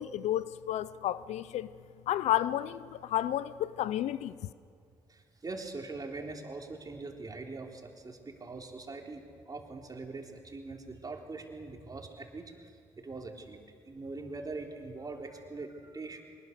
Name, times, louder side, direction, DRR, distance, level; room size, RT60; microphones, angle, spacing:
voice 1, 0.0-1.7 2.1-4.3, left 12 dB, 70° left, 0.6 m, -31 dB
voice 2, 5.1-12.5 13.0-13.6 13.9-16.2, right 3 dB, 30° right, 3.6 m, -42 dB
23.0 x 20.5 x 6.8 m
hypercardioid pair, 50°, 12 cm